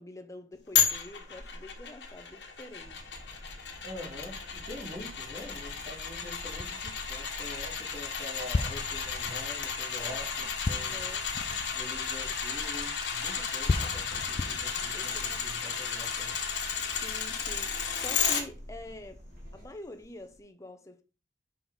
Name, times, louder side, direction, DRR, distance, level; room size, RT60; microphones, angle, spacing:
voice 1, 0.0-3.1 10.0-11.3 14.9-15.8 17.0-19.2 19.5-21.0, left 1 dB, 20° left, 0.8 m, -47 dB
sound 1, 0.7-18.4 18.8-18.9, left 7 dB, 75° left, 1.4 m, -33 dB
sound 2, 2.8-19.7, equal, 55° right, 2.8 m, -48 dB
voice 2, 3.8-11.0 11.7-16.4, left 1 dB, 35° right, 2.9 m, -45 dB
sound 3, 5.0-5.8 6.6-7.5 8.5-13.0 13.7-15.6, left 3 dB, 35° left, 0.3 m, -36 dB
5.5 x 5.3 x 3.7 m
head